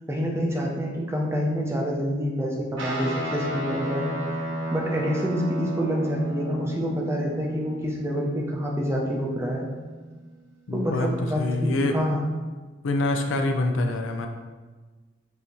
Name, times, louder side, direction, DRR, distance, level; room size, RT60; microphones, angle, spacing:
voice 1, 0.1-4.1 4.7-9.7 10.7-12.3, equal, 15° right, -1 dB, 0.5 m, -27 dB
Guitar, 2.8-10.4, right 1 dB, 80° right, 0.9 m, -33 dB
voice 2, 10.7-11.1 11.4-12.0 12.8-14.3, left 2 dB, 85° left, 4 dB, 0.5 m, -25 dB
5.5 x 2.8 x 3.0 m, 1.3 s
head